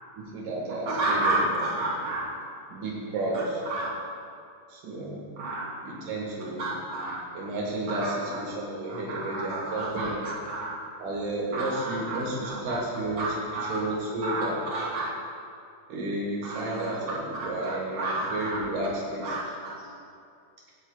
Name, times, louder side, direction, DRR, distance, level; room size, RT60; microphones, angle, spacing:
voice 1, 0.2-1.7 2.7-3.6 4.7-5.2 5.8-6.7 7.3-10.2 11.0-14.6 15.9-19.4, right 2 dB, 85° right, -3 dB, 3.0 m, -32 dB
voice 2, 0.9-2.3 3.7-3.9 5.4-5.7 6.6-7.2 7.9-8.4 8.9-10.7 11.5-12.8 13.2-13.8 14.2-15.1 16.4-16.9 17.4-17.5 18.0-18.6 19.2-19.7, right 2 dB, 40° right, -7 dB, 3.7 m, -31 dB
16.5 x 10.5 x 2.3 m, 2.4 s
omnidirectional pair, 3.6 m